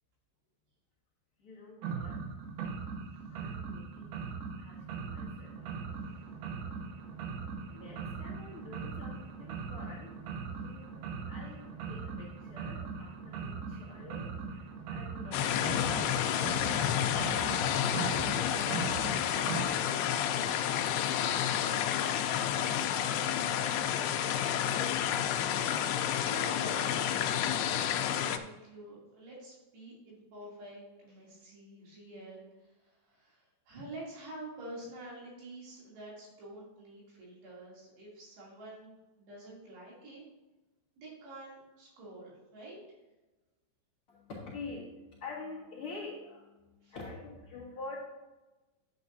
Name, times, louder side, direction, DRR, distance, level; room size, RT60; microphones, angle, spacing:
voice 1, 1.4-2.2 3.3-5.7 7.7-10.1 10.6-16.0 17.1-19.3 44.1-48.0, left 3 dB, 55° left, -8 dB, 1.5 m, -48 dB
sound 1, 1.8-19.7, right 5 dB, 80° right, 2.1 m, -40 dB
sound 2, 15.3-28.4, left 10 dB, 85° left, 3.0 m, -30 dB
voice 2, 24.6-40.2 41.0-42.8 46.8-47.0, right 1 dB, 65° right, -5 dB, 4.7 m, -48 dB
10.5 x 8.6 x 2.7 m, 1.1 s
omnidirectional pair, 5.4 m